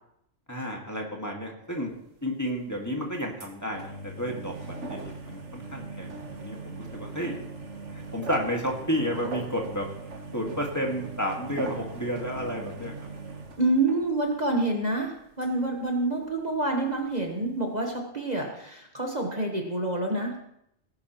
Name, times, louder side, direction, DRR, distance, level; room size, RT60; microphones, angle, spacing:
voice 1, 0.5-1.9 2.2-4.6 4.9-7.4 7.9-9.9 10.3-12.9, equal, 15° left, -1 dB, 1.8 m, -31 dB
sound 1, 1.8-2.0 2.6-2.8 3.4-14.6 14.9-15.0 15.2-15.9 16.3-16.4 16.6-16.7 17.3-17.4, right 3 dB, 65° right, 1.7 m, -40 dB
voice 2, 13.6-20.4, right 2 dB, 35° right, 1 dB, 1.3 m, -27 dB
18.5 x 10.5 x 3.0 m, 0.77 s
omnidirectional pair, 1.3 m